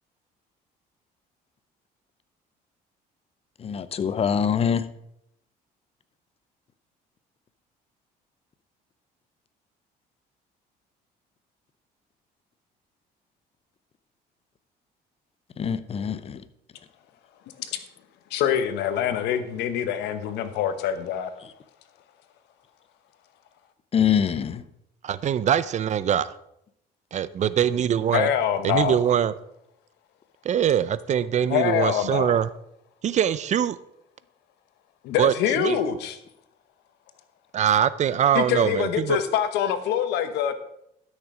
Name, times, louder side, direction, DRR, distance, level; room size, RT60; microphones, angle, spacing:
voice 1, 3.6-4.8 15.6-16.4 23.9-24.6, left 7 dB, 35° left, 14 dB, 0.7 m, -24 dB
voice 2, 18.3-21.3 28.1-29.0 31.5-32.4 35.0-36.2 38.3-40.5, left 9 dB, 85° left, 10 dB, 1.1 m, -25 dB
voice 3, 25.0-26.3 27.1-28.3 28.6-29.3 30.4-32.5 33.0-33.8 35.2-35.8 37.5-39.2, right 9 dB, 45° right, 17 dB, 0.5 m, -23 dB
12.0 x 6.5 x 4.9 m, 0.78 s
cardioid pair, 110°, 17 cm